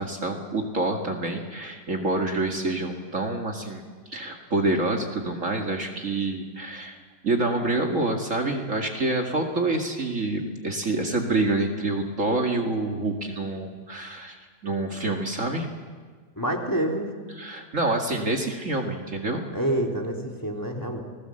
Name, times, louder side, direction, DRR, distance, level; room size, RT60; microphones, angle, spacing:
voice 1, 0.0-3.8 4.1-7.0 7.2-14.4 14.6-15.7 17.4-19.4, right 2 dB, 50° right, 2 dB, 2.3 m, -27 dB
voice 2, 16.4-17.1 19.5-21.0, right 1 dB, 10° left, 1 dB, 3.2 m, -27 dB
30.0 x 20.0 x 7.8 m, 1.5 s
omnidirectional pair, 1.8 m